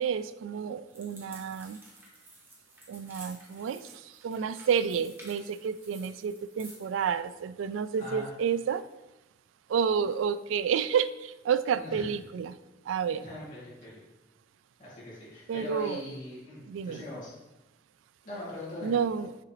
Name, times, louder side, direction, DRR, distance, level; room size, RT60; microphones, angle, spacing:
voice 1, 0.0-1.8 2.9-8.8 9.7-12.6 12.9-13.2 15.5-16.0 16.7-17.0 18.8-19.3, right 7 dB, 85° right, 14 dB, 0.3 m, -30 dB
sound 1, 0.9-6.9, right 1 dB, 10° right, 1.1 m, -52 dB
voice 2, 8.0-8.3 11.8-12.1 13.2-14.0 14.8-17.3 18.2-18.9, left 1 dB, 45° left, -8 dB, 2.2 m, -41 dB
6.7 x 4.8 x 3.0 m, 0.98 s
head